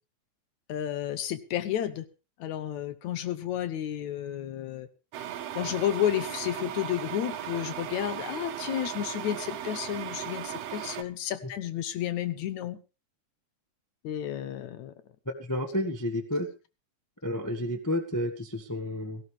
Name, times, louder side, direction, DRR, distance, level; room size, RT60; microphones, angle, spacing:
voice 1, 0.7-2.1 2.4-4.9 5.6-12.8 14.0-14.9, left 11 dB, 75° left, 13 dB, 2.3 m, -31 dB
sound 1, 5.1-11.0, right 11 dB, 65° right, 1.8 m, -37 dB
voice 2, 15.5-16.5 17.2-19.2, left 1 dB, 30° left, 3 dB, 0.3 m, -30 dB
17.5 x 15.0 x 3.4 m, 0.31 s
omnidirectional pair, 3.5 m